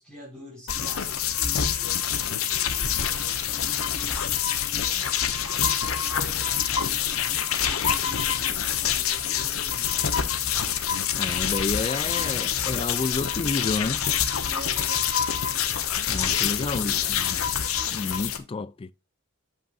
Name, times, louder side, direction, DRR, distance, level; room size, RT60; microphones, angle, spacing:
voice 1, 0.0-10.2 14.5-15.2, left 1 dB, 5° left, 5.2 m, -45 dB
sound 1, 0.7-18.4, left 8 dB, 90° left, 1.0 m, -26 dB
voice 2, 11.2-14.0 16.1-17.4 17.9-18.9, left 3 dB, 25° left, 0.4 m, -30 dB
8.4 x 7.3 x 2.5 m
head